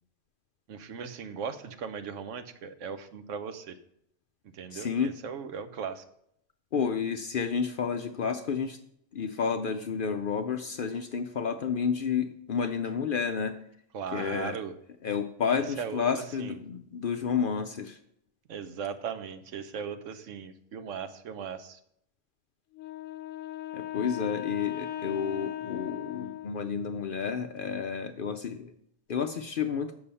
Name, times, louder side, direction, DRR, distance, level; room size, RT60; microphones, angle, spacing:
voice 1, 0.7-3.8 4.5-6.0 13.9-14.7 15.8-16.6 18.5-21.8, right 6 dB, 75° right, 10 dB, 1.1 m, -38 dB
voice 2, 4.7-5.1 6.7-8.8 9.1-13.5 14.1-14.6 15.0-18.0 23.7-28.7 29.1-29.9, left 6 dB, 60° left, 7 dB, 0.6 m, -30 dB
Wind instrument woodwind instrument, 22.7-27.0, left 13 dB, 80° left, 0.9 m, -38 dB
6.9 x 6.8 x 5.5 m, 0.72 s
omnidirectional pair, 1.3 m